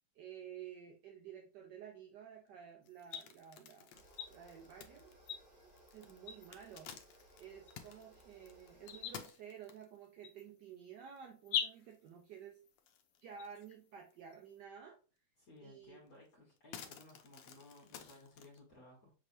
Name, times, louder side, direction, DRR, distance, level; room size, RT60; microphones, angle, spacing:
voice 1, 0.1-4.0 4.3-5.1 5.9-6.9 7.4-12.6 13.2-15.0 15.6-16.0, right 8 dB, 70° right, 2 dB, 1.1 m, -52 dB
sound 1, 2.8-14.6, left 8 dB, 90° left, 0.8 m, -47 dB
sound 2, 2.9-10.0 10.6-10.7 11.2-11.3 11.6-12.4 12.8-13.7 14.1-14.2 15.6-15.7 16.1-18.6, left 8 dB, 75° left, 1.2 m, -54 dB
sound 3, 3.9-9.2, right 1 dB, 50° right, 2.3 m, -63 dB
voice 2, 15.4-19.1, left 2 dB, 50° left, -3 dB, 1.5 m, -58 dB
6.2 x 3.2 x 2.6 m, 0.37 s
omnidirectional pair, 2.3 m